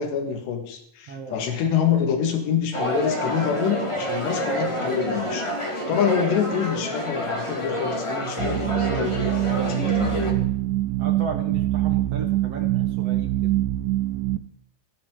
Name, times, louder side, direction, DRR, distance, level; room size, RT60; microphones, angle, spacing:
voice 1, 0.0-5.5 5.9-9.2 9.7-10.5, left 7 dB, 90° left, 4 dB, 4.0 m, -26 dB
voice 2, 1.1-1.5 11.0-13.6, right 4 dB, 60° right, 4 dB, 1.6 m, -35 dB
sound 1, 2.7-10.3, equal, 15° left, 1.2 m, -28 dB
sound 2, 8.4-14.4, right 15 dB, 85° right, 2.9 m, -24 dB
17.5 x 16.0 x 3.9 m, 0.75 s
omnidirectional pair, 4.8 m